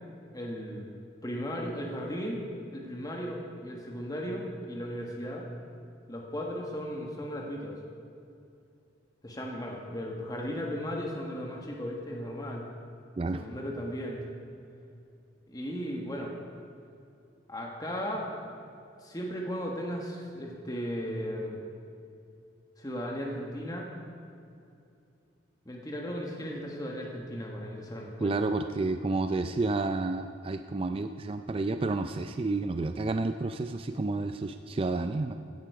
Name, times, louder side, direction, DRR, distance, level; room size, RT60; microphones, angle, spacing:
voice 1, 0.3-0.9 1.2-2.4 2.7-5.4 6.1-7.8 9.2-12.6 13.3-14.3 15.5-16.3 17.5-18.4 19.0-21.6 22.8-23.9 25.6-28.4, equal, 20° left, -1 dB, 1.5 m, -36 dB
voice 2, 28.2-35.3, right 3 dB, 30° right, 8 dB, 0.4 m, -30 dB
16.0 x 11.0 x 4.8 m, 2.6 s
head